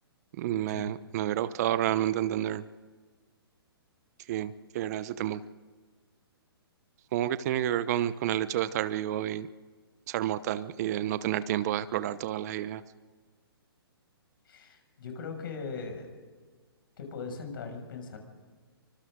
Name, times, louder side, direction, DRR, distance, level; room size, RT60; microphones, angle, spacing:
voice 1, 0.4-2.7 4.3-5.4 7.1-9.5 10.1-12.8, right 12 dB, 40° right, 15 dB, 0.9 m, -30 dB
voice 2, 14.5-16.1 17.0-18.2, left 4 dB, 60° left, 4 dB, 6.4 m, -39 dB
28.0 x 24.5 x 3.8 m, 1.5 s
hypercardioid pair, 135°, 13 cm